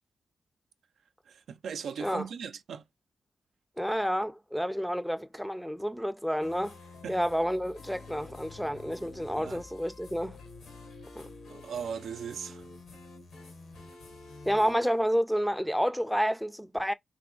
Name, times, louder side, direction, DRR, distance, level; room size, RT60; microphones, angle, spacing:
voice 1, 1.3-2.8 7.0-7.2 9.4-9.6 11.5-12.6, right 7 dB, 80° right, 0.4 m, -38 dB
voice 2, 3.8-6.7 7.1-10.4 11.2-11.3 14.5-16.9, equal, ahead, 0.4 m, -29 dB
sound 1, 6.4-14.7, left 3 dB, 90° left, 1.3 m, -48 dB
3.3 x 3.0 x 3.7 m
cardioid pair, 95°, 0 cm